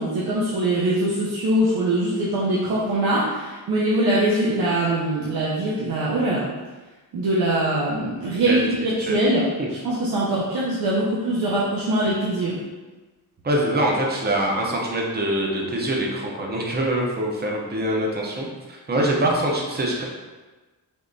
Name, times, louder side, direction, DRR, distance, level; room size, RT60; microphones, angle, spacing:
voice 1, 0.0-6.4 7.1-12.6, right 1 dB, 70° right, -7 dB, 0.6 m, -22 dB
voice 2, 8.5-9.2 13.4-20.0, right 1 dB, 25° right, -2 dB, 0.5 m, -24 dB
3.6 x 2.8 x 2.6 m, 1.2 s
wide cardioid pair, 170°, 39 cm